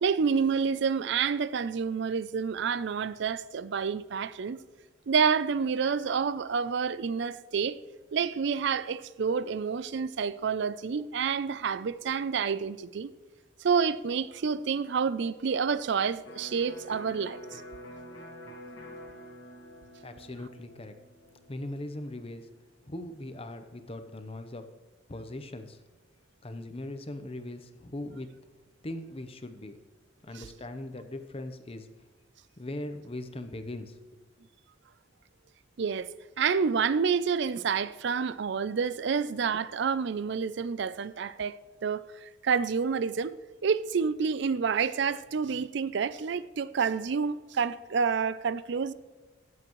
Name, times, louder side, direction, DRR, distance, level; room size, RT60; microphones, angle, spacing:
voice 1, 0.0-4.6 5.1-7.8 8.1-13.1 13.6-17.6 30.3-30.5 35.8-36.1 36.4-43.4 43.6-48.9, right 6 dB, 60° right, 0.4 m, -28 dB
Electric guitar, 16.3-23.9, equal, 70° left, 1.7 m, -48 dB
voice 2, 20.0-20.9 21.5-22.5 22.9-24.6 25.1-25.8 26.4-28.3 28.8-29.8 30.2-31.9 32.6-34.2, left 1 dB, 30° left, 0.8 m, -40 dB
16.0 x 7.6 x 3.1 m
head